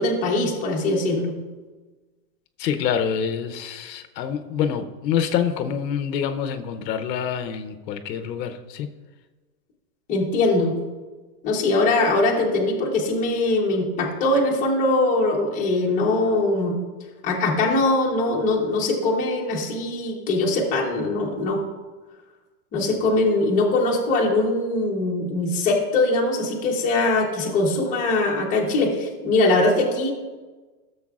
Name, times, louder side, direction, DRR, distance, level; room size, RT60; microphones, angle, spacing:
voice 1, 0.0-1.3 10.1-10.7 11.4-16.8 17.2-21.6 22.7-30.1, left 2 dB, 15° left, -2 dB, 1.0 m, -22 dB
voice 2, 2.6-8.9, left 8 dB, 80° left, 8 dB, 0.9 m, -26 dB
14.0 x 7.0 x 2.4 m, 1.3 s
supercardioid pair, 165°, 49 cm